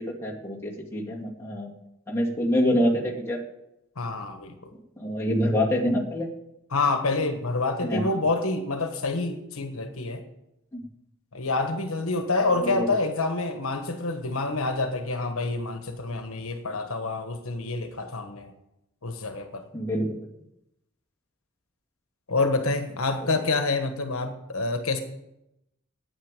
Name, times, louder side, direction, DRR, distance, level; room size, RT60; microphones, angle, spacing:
voice 1, 0.0-1.7 2.1-3.4 5.0-6.3 7.8-8.1 10.7-10.8 12.5-12.9 19.7-20.2, equal, 10° left, -4 dB, 2.3 m, -26 dB
voice 2, 4.0-4.7 6.7-10.2 11.3-18.5 19.0-19.6 22.3-25.0, left 3 dB, 75° left, 7 dB, 1.3 m, -27 dB
9.5 x 9.0 x 8.9 m, 0.85 s
head